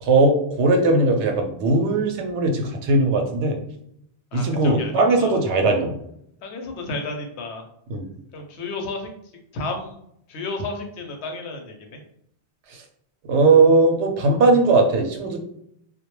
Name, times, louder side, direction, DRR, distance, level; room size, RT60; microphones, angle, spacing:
voice 1, 0.0-3.6 4.3-5.9 7.9-8.1 12.7-12.8 13.3-15.4, right 3 dB, 85° right, 3 dB, 0.9 m, -19 dB
voice 2, 4.3-4.9 5.2-5.4 6.4-7.6 8.3-9.1 9.5-10.0 10.3-12.0, left 2 dB, 80° left, 4 dB, 0.9 m, -32 dB
2.3 x 2.1 x 3.0 m, 0.71 s
omnidirectional pair, 1.1 m